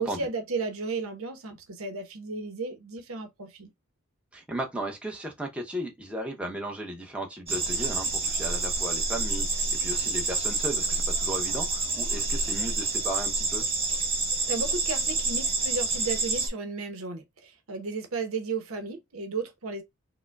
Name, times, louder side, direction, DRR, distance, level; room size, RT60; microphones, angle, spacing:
voice 1, 0.0-3.7 14.5-19.8, right 4 dB, 85° right, 0.9 m, -34 dB
voice 2, 4.3-13.7, right 1 dB, 5° right, 0.8 m, -35 dB
sound 1, 7.5-16.5, right 3 dB, 25° right, 1.1 m, -28 dB
4.8 x 2.1 x 2.2 m
head